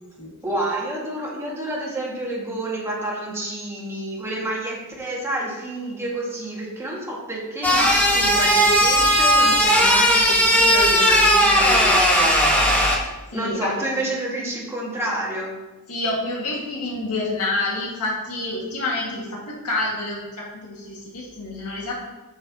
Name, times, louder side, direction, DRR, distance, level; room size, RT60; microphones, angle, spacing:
voice 1, 0.4-12.4 13.3-15.6, right 1 dB, 10° right, -4 dB, 1.8 m, -29 dB
sound 1, 7.6-13.0, equal, 10° left, 1.1 m, -17 dB
voice 2, 13.3-14.0 15.9-21.9, left 2 dB, 90° left, -3 dB, 1.8 m, -28 dB
8.5 x 7.0 x 2.8 m, 1.1 s
head